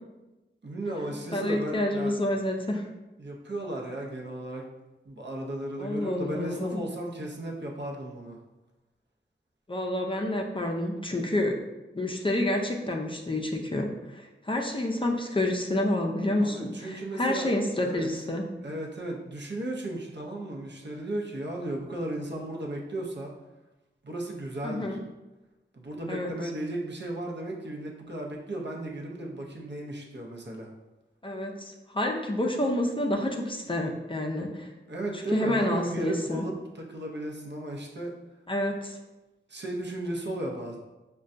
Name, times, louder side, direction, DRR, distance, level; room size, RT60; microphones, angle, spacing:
voice 1, 0.6-2.1 3.2-4.7 5.1-8.4 16.4-17.5 17.8-18.1 18.6-23.3 24.0-25.0 25.7-30.7 34.9-38.1 39.5-40.8, right 1 dB, 65° right, -1 dB, 0.6 m, -35 dB
voice 2, 1.3-2.8 5.8-6.8 9.7-11.5 11.9-18.5 24.6-25.0 26.1-26.3 31.2-34.7 35.3-36.5 38.5-39.0, left 1 dB, 25° left, 1 dB, 0.4 m, -28 dB
5.3 x 2.2 x 2.5 m, 1.1 s
wide cardioid pair, 65°, 20 cm